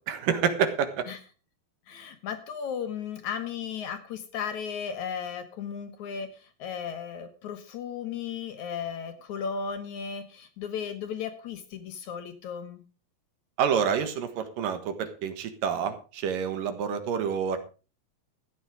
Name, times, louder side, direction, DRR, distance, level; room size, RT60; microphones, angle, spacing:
voice 1, 0.1-1.1 13.6-17.6, right 7 dB, 70° right, 9 dB, 3.0 m, -28 dB
voice 2, 1.9-12.8, left 7 dB, 65° left, 8 dB, 2.4 m, -35 dB
14.5 x 9.9 x 4.8 m, 0.34 s
omnidirectional pair, 4.1 m